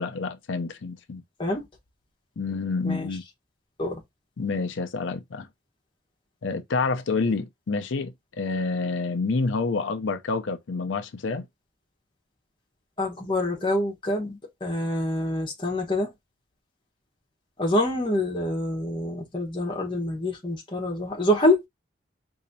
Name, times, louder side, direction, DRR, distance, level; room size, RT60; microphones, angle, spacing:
voice 1, 0.0-1.2 2.4-3.2 4.4-5.5 6.4-8.1 8.4-11.5, left 4 dB, 90° left, 0.5 m, -28 dB
voice 2, 13.0-16.1 17.6-21.7, left 1 dB, 25° left, 1.1 m, -26 dB
4.1 x 2.7 x 2.6 m
head